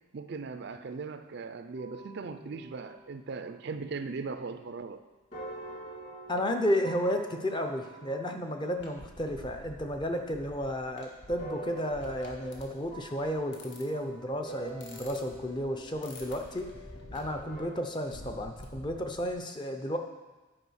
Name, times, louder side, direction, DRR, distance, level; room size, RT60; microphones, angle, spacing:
voice 1, 0.1-5.0, right 4 dB, 55° right, 10 dB, 0.4 m, -39 dB
sound 1, 1.7-5.0 5.3-10.3 11.4-17.6, right 1 dB, 40° left, 2.4 m, -47 dB
voice 2, 6.3-16.7 17.1-20.0, equal, 20° left, 5 dB, 0.6 m, -32 dB
sound 2, 8.8-19.3, left 1 dB, 55° left, 1.3 m, -49 dB
9.7 x 4.9 x 6.3 m, 1.2 s
head